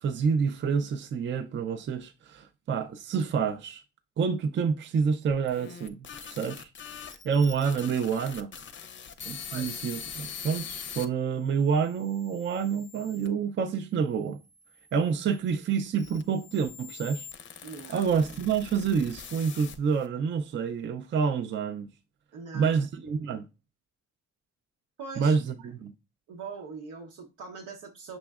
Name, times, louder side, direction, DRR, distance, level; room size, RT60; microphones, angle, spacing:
voice 1, 0.0-3.8 4.2-6.7 7.0-8.5 9.3-14.4 14.9-17.3 17.9-21.9 22.5-23.5 25.2-25.9, right 6 dB, 40° right, 0.5 m, -28 dB
sound 1, 5.3-11.1 11.7-13.3 14.1-20.1, left 7 dB, 40° left, 0.6 m, -43 dB
voice 2, 17.6-18.0 22.3-22.8 25.0-25.7 26.3-28.2, right 4 dB, 85° right, 0.9 m, -42 dB
6.0 x 3.0 x 2.4 m
cardioid pair, 90°, 30 cm